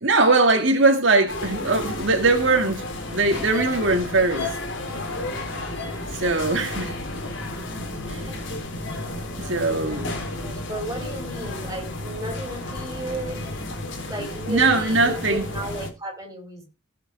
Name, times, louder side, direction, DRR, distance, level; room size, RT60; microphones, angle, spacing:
voice 1, 0.0-2.8 3.1-4.5 6.1-6.9 8.1-8.2 9.4-10.0 14.5-15.4, right 3 dB, 60° right, 2.0 m, -20 dB
sound 1, 1.3-15.9, left 2 dB, 60° left, 3.9 m, -32 dB
voice 2, 9.6-13.4 14.1-16.6, right 1 dB, 15° right, 5.0 m, -34 dB
17.0 x 7.4 x 4.8 m
head